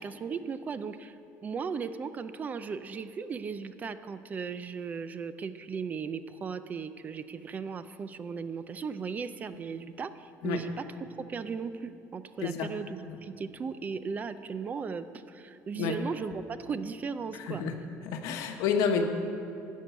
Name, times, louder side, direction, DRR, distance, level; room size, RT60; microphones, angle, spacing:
voice 1, 0.0-17.6, right 5 dB, 30° right, 12 dB, 0.4 m, -37 dB
voice 2, 12.4-12.7 15.8-15.9 17.5-17.7 18.0-19.0, left 6 dB, 75° left, 6 dB, 1.1 m, -29 dB
13.0 x 5.3 x 9.2 m, 2.6 s
cardioid pair, 140°, 6 cm